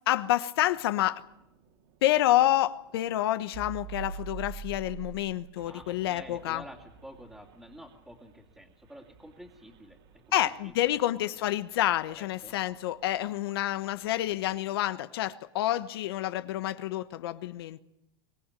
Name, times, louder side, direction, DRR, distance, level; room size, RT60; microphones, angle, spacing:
voice 1, 0.1-1.2 2.0-6.6 10.3-17.8, left 14 dB, 75° left, 1.2 m, -28 dB
sound 1, 0.5-13.3, right 6 dB, 65° right, 4.4 m, -47 dB
voice 2, 5.6-10.3 10.6-11.0 12.1-12.6, equal, 5° right, 2.7 m, -49 dB
24.5 x 19.0 x 9.9 m
supercardioid pair, 125°, 13 cm